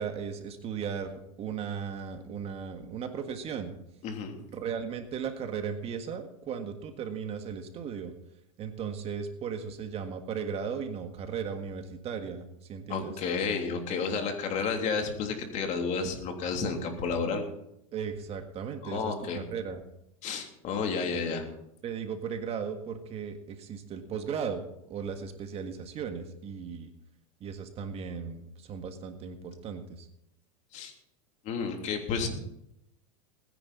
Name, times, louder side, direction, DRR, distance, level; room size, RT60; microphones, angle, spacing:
voice 1, 0.0-3.7 4.5-8.1 8.6-13.1 17.9-19.8 21.8-24.6 24.9-26.9 27.4-30.1, right 6 dB, 35° right, 6 dB, 1.7 m, -36 dB
voice 2, 4.0-4.4 12.9-17.4 18.8-19.4 20.2-21.4 30.7-30.9 31.4-32.3, left 5 dB, 45° left, 3 dB, 3.2 m, -31 dB
20.0 x 10.0 x 4.2 m, 0.80 s
hypercardioid pair, 110°, 17 cm